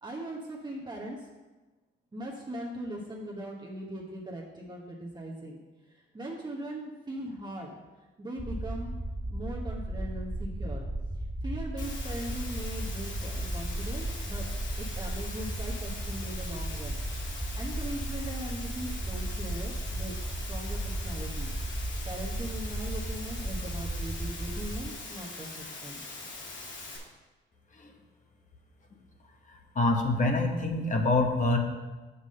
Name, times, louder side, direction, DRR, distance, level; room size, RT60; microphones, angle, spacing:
voice 1, 0.0-1.3 2.1-7.7 8.2-8.9 9.3-10.9 11.2-14.4 14.8-17.0 17.4-21.5 22.1-26.0, right 1 dB, 20° right, -3 dB, 1.1 m, -40 dB
sound 1, 8.4-24.9, right 1 dB, 5° right, 0.4 m, -35 dB
Water, 11.8-27.0, left 3 dB, 70° left, 2.3 m, -42 dB
voice 2, 29.7-31.6, left 2 dB, 40° left, 3 dB, 1.2 m, -25 dB
6.0 x 5.5 x 6.4 m, 1.2 s
cardioid pair, 90°, 20 cm